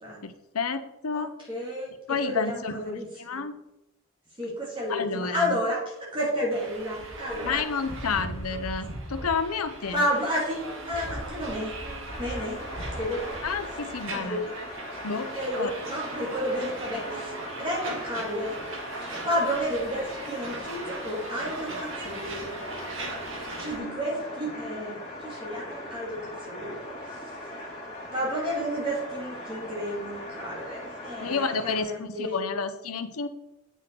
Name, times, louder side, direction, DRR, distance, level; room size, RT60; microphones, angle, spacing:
voice 1, 0.2-1.3 2.1-3.6 4.9-5.6 7.4-10.0 13.4-14.4 15.0-15.3 15.6-15.7 23.7-24.0 31.2-33.3, left 5 dB, 80° left, 10 dB, 0.8 m, -30 dB
voice 2, 1.1-1.9 2.2-3.4 4.4-7.6 9.9-11.9 12.1-12.6 13.0-13.2 14.1-14.4 15.3-18.5 19.0-22.6 23.1-23.2 23.6-27.3 28.1-32.4, equal, 25° right, -4 dB, 2.4 m, -31 dB
sound 1, 6.5-23.8, right 2 dB, 60° right, 1.7 m, -38 dB
sound 2, 12.1-31.8, left 1 dB, 35° left, 3.5 m, -40 dB
9.2 x 6.3 x 4.6 m, 0.88 s
head